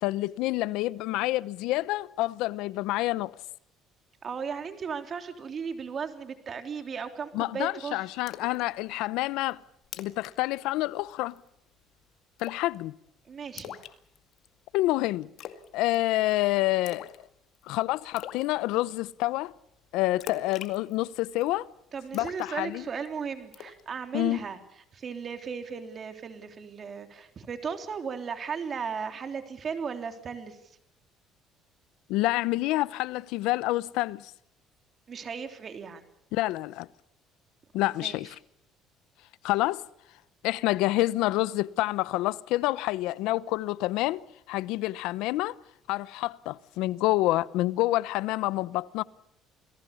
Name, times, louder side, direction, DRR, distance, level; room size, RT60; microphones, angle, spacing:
voice 1, 0.0-3.3 7.3-9.6 10.0-11.4 12.4-13.0 14.7-15.3 15.7-17.1 17.7-19.5 19.9-21.7 22.1-22.9 24.1-24.4 32.1-34.3 36.3-36.9 37.7-38.3 39.4-39.8 40.4-44.2 44.5-45.6 45.9-49.0, left 17 dB, 80° left, 0.8 m, -28 dB
voice 2, 4.2-8.0 13.3-13.8 21.9-24.6 24.9-30.6 35.1-36.0 38.0-38.2, right 6 dB, 40° right, 3.4 m, -36 dB
Splash splatter, 8.3-8.6 9.0-9.1 9.5-9.6 9.8-10.3 10.6-10.8 11.1-11.5 12.4-12.8 13.6-14.5 15.4-15.7 15.9-16.3 16.9-17.2 17.5-17.6 18.2-18.5 20.2-21.5 22.1-23.1 23.5-23.8, left 10 dB, 65° left, 2.1 m, -42 dB
28.5 x 19.0 x 7.1 m
cardioid pair, 110°, 0 cm